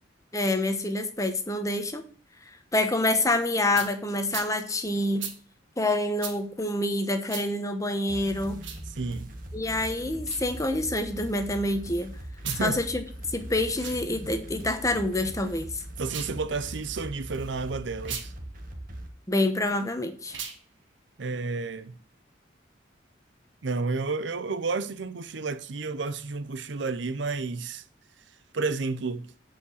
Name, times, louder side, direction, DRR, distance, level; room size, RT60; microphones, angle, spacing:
voice 1, 0.3-2.0 2.5-5.4 5.8-8.6 9.5-12.1 12.6-13.0 13.3-15.8 19.3-20.4, left 1 dB, 20° left, 1.0 m, -27 dB
sound 1, 3.7-3.9 4.3-4.5 5.2-5.4 6.2-6.4 7.3-7.5 8.5-8.8 10.2-10.4 12.3-12.6 13.7-14.0 16.0-16.4 18.0-18.3 20.3-20.6, right 7 dB, 90° right, 1.6 m, -36 dB
sound 2, 8.1-19.1, right 1 dB, 50° right, 1.5 m, -41 dB
voice 2, 9.0-9.3 12.5-12.8 16.0-18.3 21.2-21.9 23.6-27.8 28.5-29.3, right 4 dB, 70° right, 0.7 m, -31 dB
8.4 x 5.1 x 6.4 m
head